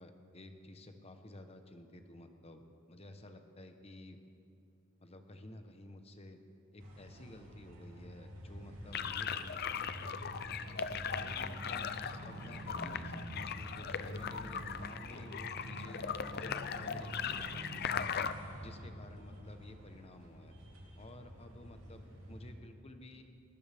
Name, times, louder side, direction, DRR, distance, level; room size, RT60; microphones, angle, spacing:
voice 1, 0.0-4.2 5.0-6.4 6.7-10.1 11.1-18.3 18.6-20.6 21.0-23.2, left 1 dB, 30° left, 6 dB, 1.0 m, -52 dB
sound 1, 6.8-22.5, equal, 65° right, 3.3 m, -47 dB
sound 2, 8.9-18.3, left 7 dB, 50° left, 0.5 m, -39 dB
19.5 x 19.0 x 3.5 m, 2.6 s
head